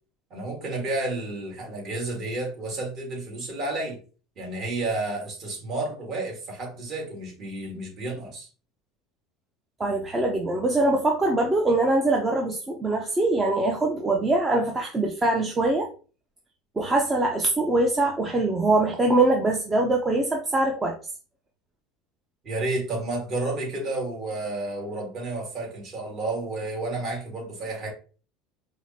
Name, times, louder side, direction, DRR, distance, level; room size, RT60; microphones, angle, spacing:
voice 1, 0.3-4.0 4.4-8.5 22.4-27.9, right 2 dB, 45° right, 0 dB, 1.7 m, -31 dB
voice 2, 9.8-15.9 16.8-21.0, right 2 dB, 20° right, 0 dB, 0.6 m, -23 dB
4.8 x 2.1 x 2.7 m, 0.37 s
supercardioid pair, 125°, 0 cm